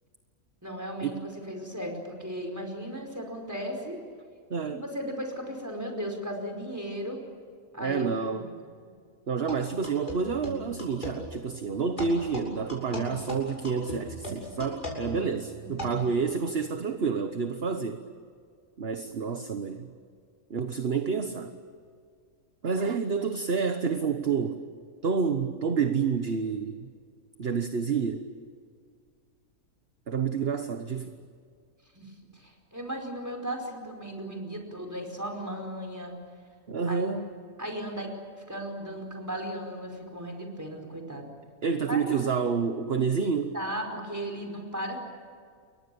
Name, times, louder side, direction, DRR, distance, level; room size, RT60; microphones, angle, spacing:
voice 1, 0.6-4.0 4.7-7.2 7.7-8.5 15.6-15.9 31.9-36.1 36.8-37.1 37.6-38.1 38.5-41.3 41.9-42.2 43.5-45.0, equal, 10° right, 3 dB, 4.9 m, -36 dB
voice 2, 4.5-4.8 7.8-8.5 9.3-18.0 18.8-19.9 20.5-21.5 22.6-24.6 25.0-26.9 27.4-28.2 30.1-31.2 36.7-37.3 41.6-43.5, right 5 dB, 45° right, 8 dB, 1.3 m, -29 dB
sound 1, 9.5-11.2 12.0-16.1, equal, 30° left, 7.2 m, -37 dB
29.5 x 23.5 x 7.1 m, 2.1 s
omnidirectional pair, 1.5 m